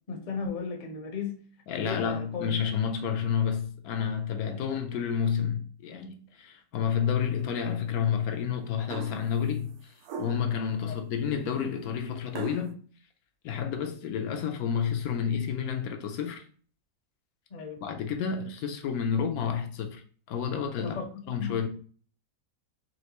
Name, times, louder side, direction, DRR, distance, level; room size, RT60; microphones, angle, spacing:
voice 1, 0.1-1.4 1.8-2.5 10.8-10.9 17.5-17.8 20.8-21.7, left 5 dB, 40° left, 0.7 m, -36 dB
voice 2, 1.7-12.8 13.4-16.4 17.8-20.0 20.3-21.0 21.3-21.7, left 7 dB, 75° left, 1.1 m, -30 dB
sound 1, 8.9-9.3 10.0-10.6 12.3-12.7, right 3 dB, 85° right, 1.1 m, -38 dB
4.3 x 3.1 x 2.9 m
omnidirectional pair, 1.6 m